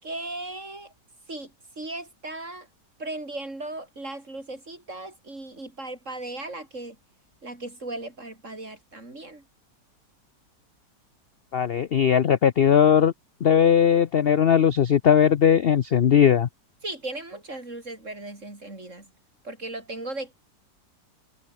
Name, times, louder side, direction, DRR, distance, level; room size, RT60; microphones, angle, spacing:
voice 1, 0.0-0.9 1.3-2.7 3.0-7.0 7.4-9.4 16.8-19.1 19.4-20.3, right 2 dB, 40° right, 5.7 m, -37 dB
voice 2, 11.5-13.1 13.4-16.5, left 8 dB, 65° left, 0.5 m, -19 dB
omnidirectional pair, 1.9 m